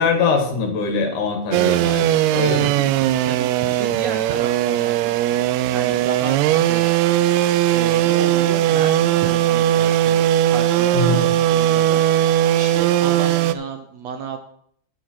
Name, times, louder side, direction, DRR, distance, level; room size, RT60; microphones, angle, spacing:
voice 1, 0.0-2.7 10.9-11.3, left 4 dB, 70° left, 4 dB, 2.9 m, -22 dB
sound 1, 1.5-13.5, right 13 dB, 85° right, 1.6 m, -18 dB
voice 2, 3.2-5.1 5.7-6.9 7.7-10.2 10.5-12.0 12.5-14.4, right 6 dB, 70° right, 5 dB, 1.8 m, -32 dB
10.0 x 9.3 x 4.4 m, 0.64 s
omnidirectional pair, 3.7 m